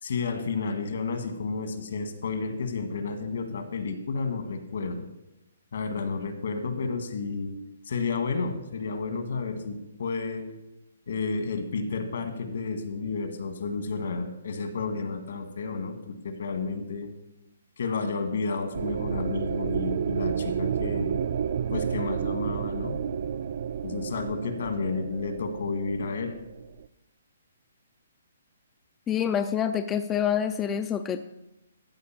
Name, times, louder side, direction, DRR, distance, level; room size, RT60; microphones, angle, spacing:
voice 1, 0.0-5.1 5.7-7.6 7.9-10.5 11.1-17.1 17.8-21.2 21.7-23.0 23.8-26.3, left 4 dB, 65° left, 7 dB, 1.8 m, -31 dB
sound 1, 18.7-26.9, right 8 dB, 50° right, 0.4 m, -31 dB
voice 2, 29.1-31.3, left 8 dB, 15° left, 9 dB, 0.4 m, -27 dB
14.0 x 4.8 x 7.5 m, 0.92 s
hypercardioid pair, 165°, 0 cm